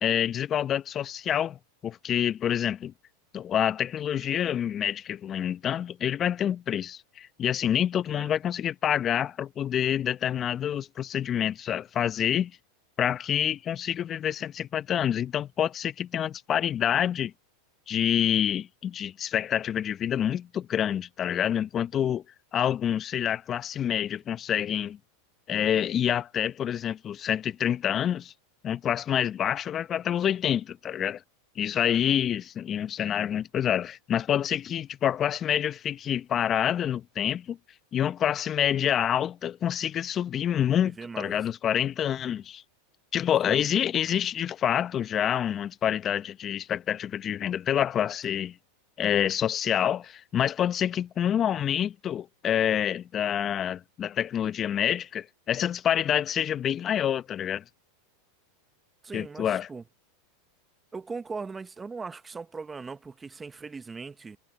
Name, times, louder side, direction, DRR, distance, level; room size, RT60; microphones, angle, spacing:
voice 1, 0.0-2.9 3.3-12.5 13.0-17.3 17.9-22.2 22.5-25.0 25.5-28.3 28.6-31.2 31.6-37.6 37.9-42.6 43.1-48.6 49.0-57.6 59.1-59.7, left 10 dB, 35° left, 0.8 m, -27 dB
voice 2, 41.0-41.5 43.5-43.7 59.0-59.8 60.9-64.4, right 4 dB, 15° right, 1.1 m, -39 dB
hypercardioid pair, 105°, 0 cm